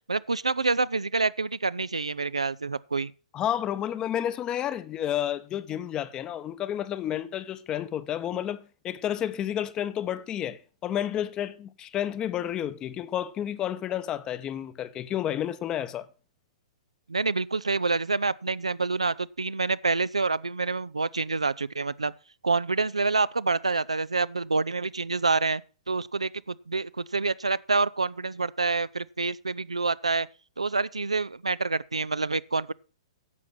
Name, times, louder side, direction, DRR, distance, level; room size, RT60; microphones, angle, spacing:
voice 1, 0.1-3.1 17.1-22.1 22.4-25.6 25.9-30.3 30.6-32.7, right 3 dB, 85° right, 0.4 m, -27 dB
voice 2, 3.3-16.1, left 10 dB, 25° left, 0.8 m, -31 dB
11.0 x 7.1 x 5.9 m
figure-of-eight pair, 115°, 3 cm